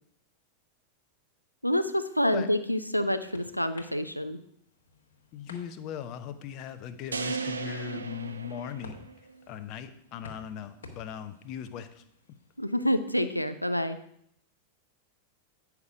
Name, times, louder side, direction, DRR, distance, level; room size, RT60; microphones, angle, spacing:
voice 1, 1.6-4.4 12.6-14.0, equal, 90° left, 10 dB, 0.6 m, -27 dB
sound 1, 2.6-13.4, left 3 dB, 65° left, 1.5 m, -55 dB
voice 2, 5.3-9.1 9.5-12.0, left 9 dB, 40° left, 10 dB, 0.8 m, -39 dB
sound 2, 7.1-9.4, right 4 dB, 75° right, 0.6 m, -36 dB
9.5 x 5.9 x 5.0 m, 0.70 s
figure-of-eight pair, 90°, 0 cm